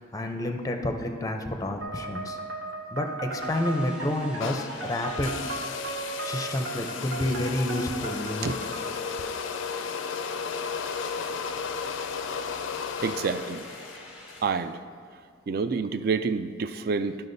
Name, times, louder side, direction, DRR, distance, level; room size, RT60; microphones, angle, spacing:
voice 1, 0.1-2.4 2.9-5.4 6.2-8.5, left 1 dB, 20° left, 5 dB, 0.5 m, -29 dB
sound 1, 1.8-9.0, right 2 dB, 85° right, 1.1 m, -36 dB
sound 2, 3.4-14.4, equal, 5° right, 0.8 m, -48 dB
sound 3, 4.4-14.6, left 6 dB, 90° left, 0.4 m, -34 dB
voice 2, 13.0-13.8 14.4-14.8 15.5-17.2, right 5 dB, 50° right, 11 dB, 0.3 m, -28 dB
13.0 x 5.7 x 2.6 m, 2.1 s
head